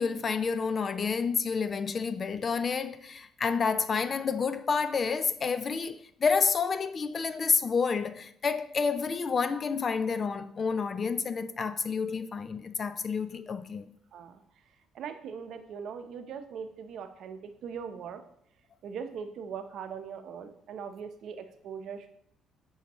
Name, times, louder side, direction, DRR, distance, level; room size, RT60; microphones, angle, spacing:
voice 1, 0.0-13.9, left 5 dB, 35° left, 0.4 m, -29 dB
voice 2, 14.9-18.2 18.8-22.1, right 6 dB, 60° right, 0.7 m, -40 dB
8.3 x 5.6 x 3.0 m
cardioid pair, 130°, 0 cm